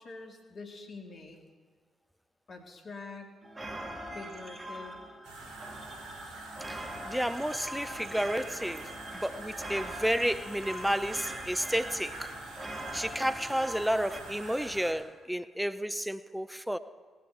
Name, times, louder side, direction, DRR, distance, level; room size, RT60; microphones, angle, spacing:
voice 1, 0.0-1.4 2.5-3.3 4.1-5.0, left 3 dB, 50° left, 2.1 m, -45 dB
sound 1, 3.4-14.2, right 1 dB, 30° right, 1.9 m, -42 dB
sound 2, 5.2-14.9, right 2 dB, 65° right, 2.7 m, -45 dB
voice 2, 6.7-12.3 12.9-16.8, equal, 5° right, 0.6 m, -31 dB
17.5 x 9.6 x 4.6 m
hypercardioid pair, 40°, 0 cm